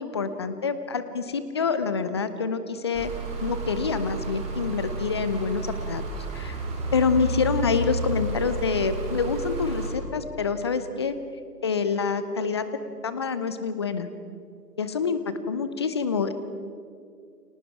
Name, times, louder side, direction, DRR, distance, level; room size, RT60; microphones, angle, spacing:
voice 1, 0.0-3.1 3.4-6.0 6.3-6.6 6.9-11.2 11.6-12.7 13.0-14.1 14.8-16.3, left 5 dB, 15° left, 12 dB, 0.7 m, -27 dB
sound 1, 2.9-9.9, right 2 dB, 15° right, 3.9 m, -31 dB
29.5 x 26.0 x 4.9 m, 2.4 s
figure-of-eight pair, 140°, 48 cm